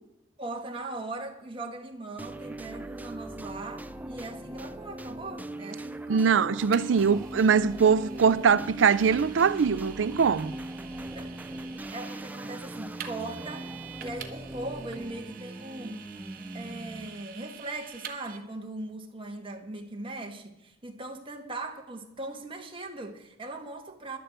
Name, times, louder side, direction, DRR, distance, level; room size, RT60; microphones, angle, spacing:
voice 1, 0.4-6.4 11.1-11.3 11.9-13.7 14.0-16.1 16.5-24.2, right 2 dB, 30° right, 1.6 m, -39 dB
sound 1, 2.2-17.3, right 1 dB, 10° right, 0.5 m, -40 dB
voice 2, 6.1-10.5, right 6 dB, 85° right, 0.4 m, -22 dB
Vehicle, 6.7-18.4, right 8 dB, 50° right, 1.3 m, -47 dB
11.5 x 7.9 x 8.1 m
head